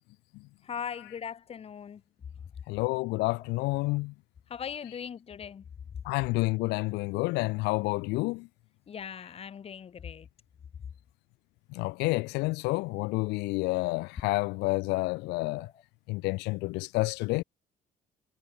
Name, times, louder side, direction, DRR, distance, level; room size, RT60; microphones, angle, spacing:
voice 1, 0.6-2.0 3.8-4.0 4.5-5.7 5.9-6.0 8.9-10.3 15.6-15.8, left 7 dB, 35° left, 1.0 m, -40 dB
voice 2, 2.7-4.1 6.0-8.5 11.7-15.7 16.1-17.4, left 23 dB, 90° left, 0.4 m, -29 dB
cardioid pair, 110°, 17 cm